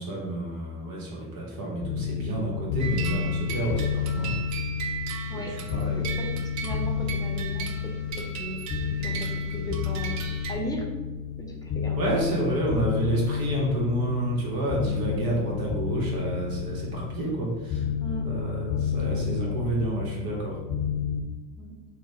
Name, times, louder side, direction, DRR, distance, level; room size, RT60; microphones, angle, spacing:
voice 1, 0.0-4.3 5.1-6.0 12.0-17.8 18.2-20.6, right 1 dB, 75° right, -2 dB, 1.0 m, -30 dB
sound 1, 1.8-21.2, left 7 dB, 50° left, 0.6 m, -30 dB
sound 2, 2.8-10.5, right 7 dB, 50° right, 0.5 m, -37 dB
voice 2, 6.0-6.3 6.6-7.9 8.2-8.6 9.0-10.2 10.5-10.9 11.4-12.0 12.3-12.4 18.0-18.3 18.6-18.8 19.1-19.2 21.5-21.8, equal, 10° left, 0 dB, 0.6 m, -37 dB
2.9 x 2.1 x 4.1 m, 1.2 s
cardioid pair, 100°, 36 cm